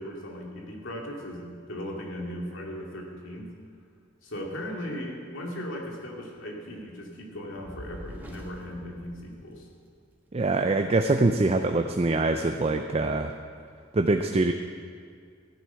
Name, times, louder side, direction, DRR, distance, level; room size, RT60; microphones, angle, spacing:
voice 1, 0.0-3.5 4.2-9.7, equal, 80° left, -1 dB, 2.4 m, -37 dB
Fire, 7.5-10.0, equal, 10° right, 1.4 m, -45 dB
voice 2, 10.3-13.3 13.9-14.5, right 2 dB, 30° right, 5 dB, 0.5 m, -24 dB
14.5 x 9.2 x 5.8 m, 2.1 s
head